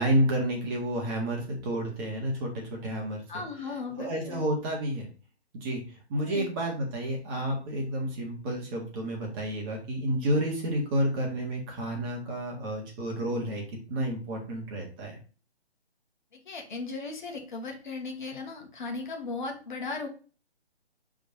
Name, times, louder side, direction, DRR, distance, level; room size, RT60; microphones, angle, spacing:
voice 1, 0.0-3.4 4.0-5.1 5.5-15.2, right 1 dB, 20° right, 0 dB, 1.6 m, -30 dB
voice 2, 3.3-4.4 6.2-6.5 16.4-20.1, left 3 dB, 45° left, 2 dB, 1.6 m, -36 dB
6.2 x 3.7 x 4.1 m, 0.36 s
figure-of-eight pair, 145°, 33 cm